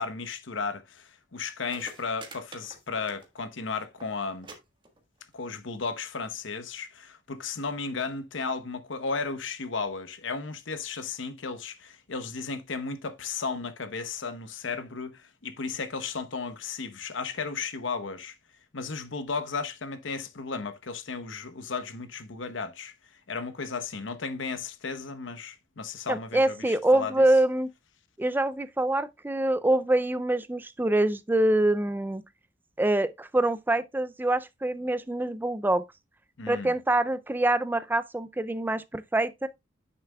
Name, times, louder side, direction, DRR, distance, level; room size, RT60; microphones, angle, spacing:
voice 1, 0.0-4.5 5.3-18.3 18.7-22.9 23.3-27.2 36.4-36.7, left 4 dB, 80° left, 1.0 m, -34 dB
sound 1, 1.3-1.4 1.6-3.6 3.8-4.1 4.4-4.6 4.8-5.3 6.2-6.3, right 3 dB, 25° right, 1.5 m, -47 dB
voice 2, 26.1-27.7 28.2-32.2 32.8-35.9 36.5-39.5, right 1 dB, 10° right, 0.4 m, -25 dB
9.0 x 6.8 x 2.3 m
head